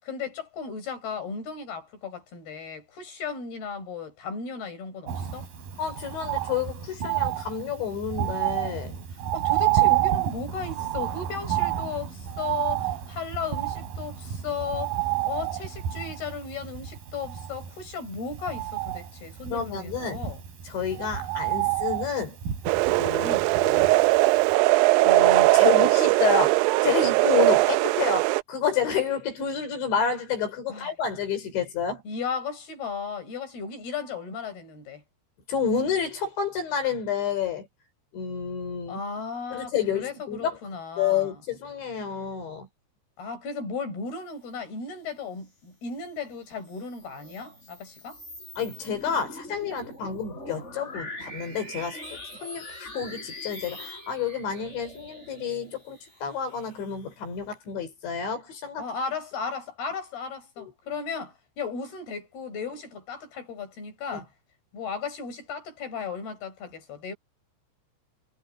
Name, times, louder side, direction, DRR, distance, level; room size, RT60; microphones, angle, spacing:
voice 1, 0.0-5.5 9.3-15.0 15.3-20.4 23.2-23.5 25.8-25.9 30.7-30.9 32.0-35.0 38.9-41.4 43.2-48.2 58.8-64.3 64.7-67.1, left 5 dB, 60° left, 8.4 m, -35 dB
Bird, 5.1-24.2 24.5-24.6, right 13 dB, 55° right, 6.1 m, -29 dB
voice 2, 5.8-8.9 19.5-20.2 20.7-22.4 23.0-24.0 25.0-32.0 35.5-37.7 38.1-39.0 39.5-40.6 41.0-42.7 48.6-58.8 60.6-60.7 64.1-64.2, left 6 dB, 75° left, 7.2 m, -29 dB
sound 1, 22.7-28.4, right 21 dB, 85° right, 2.5 m, -20 dB
sound 2, 46.5-57.4, left 1 dB, 15° left, 6.5 m, -43 dB
omnidirectional pair, 5.2 m